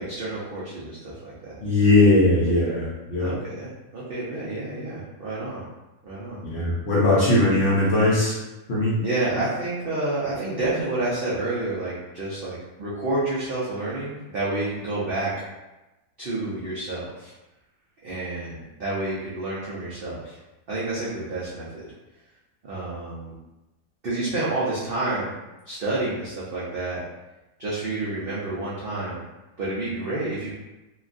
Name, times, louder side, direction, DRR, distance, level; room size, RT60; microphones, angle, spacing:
voice 1, 0.0-1.5 3.2-5.6 6.0-6.4 9.0-15.3 16.2-17.3 18.0-20.4 20.7-21.9 22.6-23.3 24.0-25.3 25.7-27.0 27.6-29.2 29.6-30.5, right 2 dB, 75° right, -8 dB, 0.5 m, -29 dB
voice 2, 1.6-3.3 6.5-8.4 8.7-9.0, left 2 dB, 55° left, -8 dB, 0.8 m, -19 dB
3.1 x 2.2 x 2.5 m, 1.0 s
omnidirectional pair, 1.7 m